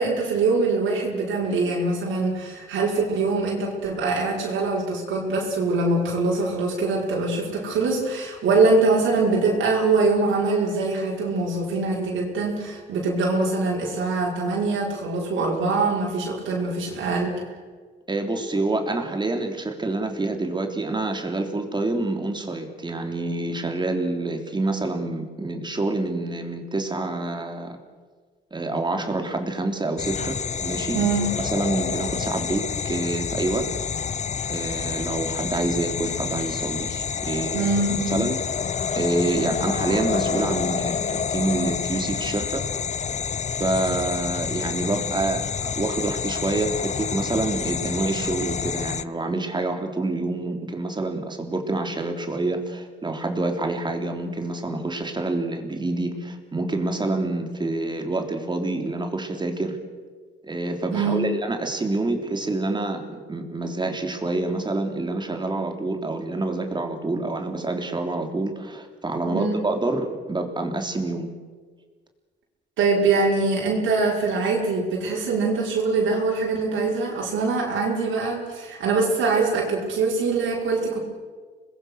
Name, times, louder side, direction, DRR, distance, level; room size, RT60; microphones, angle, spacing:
voice 1, 0.0-17.4 30.9-31.4 37.5-38.3 60.9-61.3 69.2-69.6 72.8-81.0, right 3 dB, 80° right, -3 dB, 5.6 m, -23 dB
voice 2, 18.1-27.8 28.5-31.0 31.5-33.7 34.5-37.7 38.1-38.4 39.0-42.7 43.6-59.8 60.4-71.3, right 2 dB, 20° right, 4 dB, 3.4 m, -27 dB
sound 1, 30.0-49.0, left 6 dB, 35° left, 0.7 m, -28 dB
26.0 x 21.0 x 6.5 m, 1.5 s
cardioid pair, 90°, 20 cm